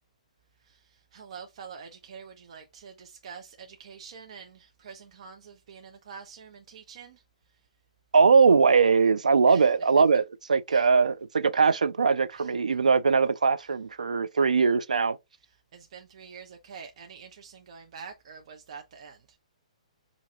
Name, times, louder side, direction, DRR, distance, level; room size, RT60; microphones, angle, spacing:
voice 1, 0.6-7.6 9.5-9.9 10.7-10.9 12.4-12.5 15.4-19.4, right 6 dB, 55° right, 0.9 m, -46 dB
voice 2, 8.1-10.2 10.5-15.2, right 5 dB, 80° right, 0.5 m, -21 dB
7.3 x 2.9 x 2.4 m
figure-of-eight pair, 125°, 4 cm